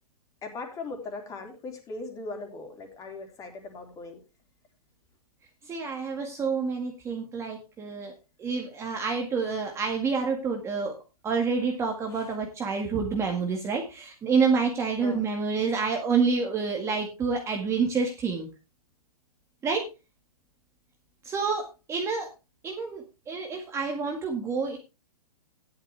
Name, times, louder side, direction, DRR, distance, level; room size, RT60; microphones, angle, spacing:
voice 1, 0.4-4.2 12.1-12.3 15.0-15.3, left 3 dB, 15° left, 3 dB, 3.6 m, -39 dB
voice 2, 5.7-8.1 8.4-10.9 11.2-18.5 19.6-19.8 21.2-22.3 22.6-24.8, right 5 dB, 15° right, 2 dB, 1.8 m, -28 dB
13.5 x 11.0 x 3.4 m, 0.28 s
hypercardioid pair, 150°, 19 cm